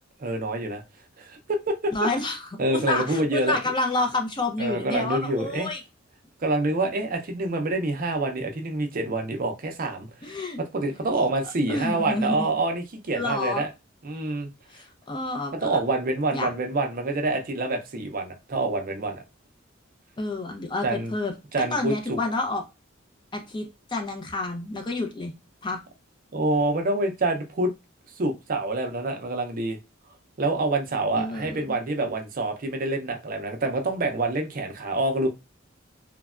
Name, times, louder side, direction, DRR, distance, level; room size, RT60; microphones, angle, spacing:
voice 1, 0.2-0.8 1.2-1.4 1.7-1.9 2.6-3.6 4.6-5.7 6.4-10.1 10.6-13.7 14.0-14.5 15.5-19.2 20.8-21.1 21.5-22.2 26.3-27.7 28.2-29.8 30.4-35.3, right 2 dB, 45° right, 0.5 m, -26 dB
voice 2, 1.9-5.8 10.2-10.6 11.7-12.5 13.1-13.6 14.7-15.8 16.3-16.5 20.2-21.3 21.7-22.6 23.3-25.3 25.6-25.8 31.2-31.6, left 2 dB, 25° left, 0.5 m, -29 dB
3.2 x 2.1 x 2.3 m
head